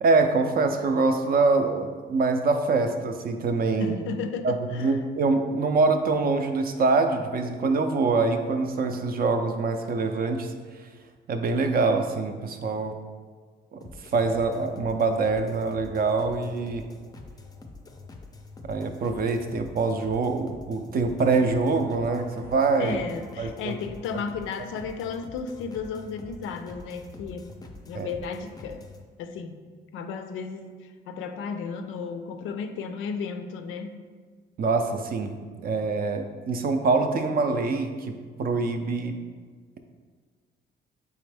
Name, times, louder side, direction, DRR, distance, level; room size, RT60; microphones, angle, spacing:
voice 1, 0.0-4.0 4.4-10.5 11.3-12.9 13.7-13.8 14.1-16.8 18.7-23.0 23.4-23.8 24.1-24.2 27.9-28.1 34.6-35.3 35.6-38.1 38.4-39.2, right 3 dB, 50° right, 6 dB, 0.4 m, -24 dB
voice 2, 3.8-5.0 22.8-27.5 27.9-28.9 29.2-29.6 29.9-34.1, left 5 dB, 90° left, 8 dB, 0.4 m, -34 dB
sound 1, 13.8-29.0, left 3 dB, 20° left, 0.4 m, -46 dB
4.2 x 3.5 x 3.3 m, 1.5 s
cardioid pair, 90°, 20 cm